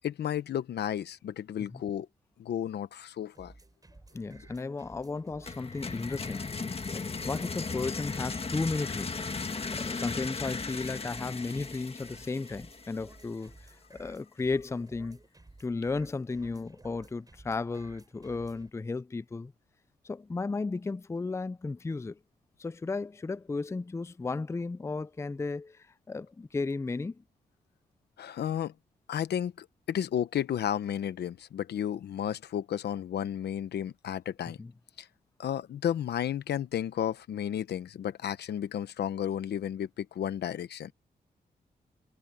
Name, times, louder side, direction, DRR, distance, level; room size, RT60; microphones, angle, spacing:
voice 1, 0.0-2.1 2.4-3.5 28.2-28.7 29.1-34.6 35.0-35.1 35.4-40.9, left 10 dB, 85° left, 1.0 m, -33 dB
sound 1, 3.3-18.7, right 2 dB, 20° right, 6.8 m, -55 dB
voice 2, 4.1-6.5 6.9-9.2 9.7-15.2 15.6-19.5 20.0-22.2 22.6-27.2 34.6-34.7, left 3 dB, 15° left, 0.4 m, -34 dB
sound 2, 5.4-13.2, left 4 dB, 35° left, 1.6 m, -36 dB
cardioid pair, 85°, 17 cm